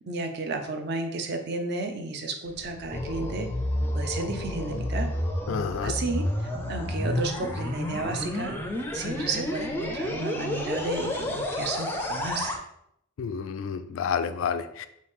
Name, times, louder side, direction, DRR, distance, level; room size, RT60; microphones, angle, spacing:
voice 1, 0.1-3.5 3.9-5.1 5.8-8.6 8.9-12.5, right 3 dB, 50° right, 5 dB, 0.6 m, -32 dB
sound 1, 2.5-12.6, left 1 dB, 10° left, 0.4 m, -30 dB
voice 2, 5.5-5.9 13.2-14.9, left 6 dB, 70° left, 11 dB, 0.3 m, -30 dB
4.7 x 2.7 x 3.5 m, 0.75 s
head